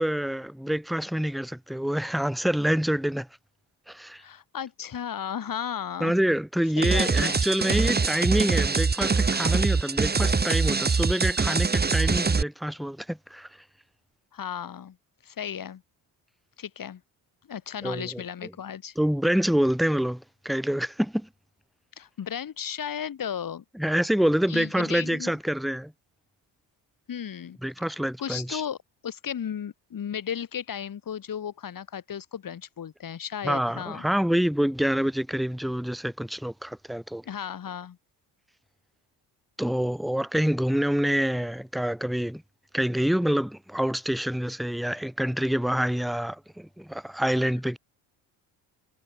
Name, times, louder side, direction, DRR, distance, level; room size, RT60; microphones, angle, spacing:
voice 1, 0.0-3.3 3.9-4.2 6.0-13.5 17.8-18.5 19.0-21.3 23.7-25.9 27.6-28.6 33.4-37.2 39.6-42.4 42.7-47.8, equal, ahead, 1.2 m, -26 dB
voice 2, 4.2-6.1 6.8-8.0 14.3-15.0 15.2-15.8 16.6-17.0 17.5-18.9 22.0-23.6 24.5-25.3 27.1-27.6 27.9-28.8 29.0-34.1 37.2-38.0, left 8 dB, 50° left, 7.9 m, -35 dB
sound 1, 6.8-12.4, right 4 dB, 20° right, 2.3 m, -24 dB
cardioid pair, 105°, 43 cm